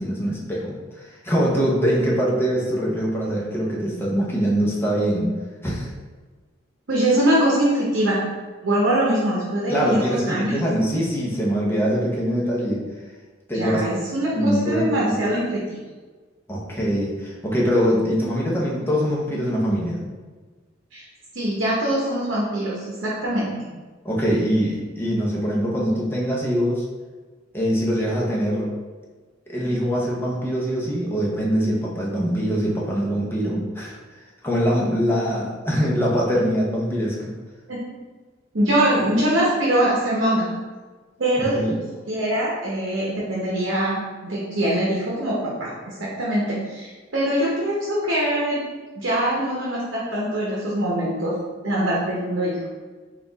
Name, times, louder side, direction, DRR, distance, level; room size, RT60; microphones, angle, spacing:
voice 1, 0.0-5.3 5.6-5.9 9.7-12.8 13.5-13.8 14.3-15.2 16.5-20.0 24.0-26.9 27.5-28.7 29.5-33.9 34.4-37.3 41.4-41.8, equal, 10° left, -4 dB, 0.7 m, -23 dB
voice 2, 6.9-8.2 8.6-10.5 13.5-15.6 20.9-21.0 21.3-23.5 37.7-37.8 38.5-40.5 41.2-41.8 42.1-48.6 48.9-51.4 51.6-52.6, right 1 dB, 70° right, -6 dB, 0.8 m, -23 dB
4.1 x 2.4 x 3.9 m, 1.4 s
head